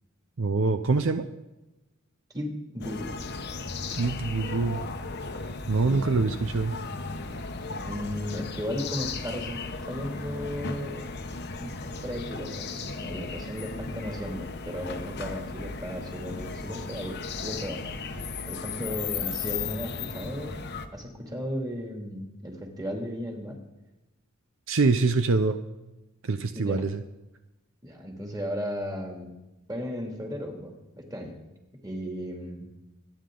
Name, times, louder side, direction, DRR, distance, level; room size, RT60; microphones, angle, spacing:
voice 1, 0.4-1.2 3.9-4.8 5.7-6.7 24.7-25.6 26.2-27.0, right 3 dB, 65° right, 9 dB, 0.6 m, -24 dB
voice 2, 2.3-3.2 5.8-6.3 7.8-11.1 11.6-11.8 12.0-17.9 18.5-20.6 20.9-23.6 26.5-26.9 27.8-29.3 29.7-31.4 31.8-32.7, equal, 20° right, 1 dB, 2.5 m, -35 dB
sound 1, 2.8-20.9, left 4 dB, 50° left, 1.0 m, -36 dB
25.0 x 9.6 x 3.8 m, 1.0 s
head